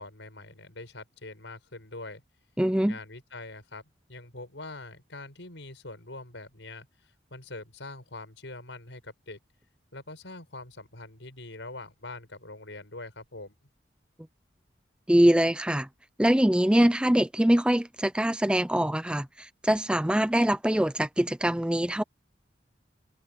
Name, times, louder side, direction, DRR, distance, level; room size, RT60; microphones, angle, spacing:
voice 1, 0.0-2.2 2.8-3.8 4.1-6.9 7.3-9.4 9.9-13.5, left 2 dB, 85° left, 5.6 m, -43 dB
voice 2, 2.6-3.0 15.1-15.9 16.2-22.0, right 1 dB, 5° right, 0.5 m, -23 dB
head